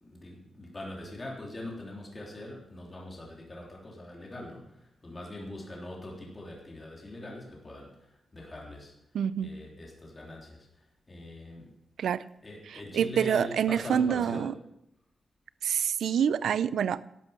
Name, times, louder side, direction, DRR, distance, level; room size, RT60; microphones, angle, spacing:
voice 1, 0.0-8.9 9.4-11.7 12.4-14.5, left 1 dB, 25° left, -2 dB, 3.2 m, -42 dB
voice 2, 9.1-9.5 12.0-12.2 12.9-14.5 15.6-17.0, right 8 dB, 90° right, 17 dB, 0.4 m, -26 dB
12.0 x 8.2 x 5.8 m, 0.82 s
cardioid pair, 100°, 0 cm